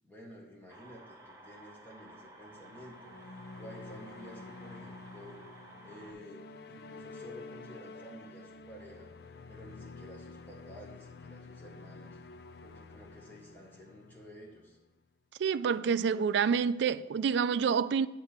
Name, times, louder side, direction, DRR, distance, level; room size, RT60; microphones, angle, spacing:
voice 1, 0.0-3.1 3.6-5.4 5.8-9.1 9.5-12.2 12.6-14.8, equal, 10° left, 1.6 m, -51 dB
sound 1, 0.7-6.1, right 1 dB, 15° right, 0.9 m, -54 dB
sound 2, 2.6-15.0, left 3 dB, 65° left, 0.4 m, -49 dB
voice 2, 15.4-18.1, right 6 dB, 85° right, 0.3 m, -28 dB
8.1 x 4.4 x 6.6 m
head